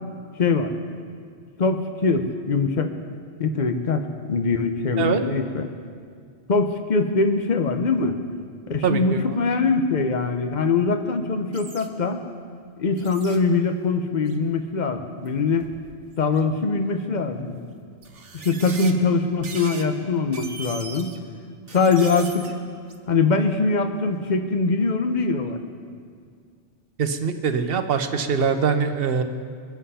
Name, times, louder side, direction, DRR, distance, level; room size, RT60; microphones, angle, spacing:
voice 1, 0.4-0.7 1.6-2.9 3.4-4.0 4.3-5.7 6.5-8.2 8.7-12.2 12.8-15.7 16.2-17.6 18.3-21.1 21.7-22.6 23.1-25.6, left 4 dB, 45° left, 7 dB, 1.0 m, -22 dB
voice 2, 8.8-9.4 27.0-29.2, right 6 dB, 60° right, 8 dB, 1.0 m, -23 dB
sound 1, 11.5-11.9 13.0-13.4 14.3-14.5 15.3-15.4 15.6-16.4 17.3-17.4 18.0-18.9 19.4-19.8 20.2-21.2 21.7-22.5 22.9-23.0, right 4 dB, 85° right, 1.4 m, -39 dB
22.5 x 7.8 x 5.6 m, 2.1 s
omnidirectional pair, 1.2 m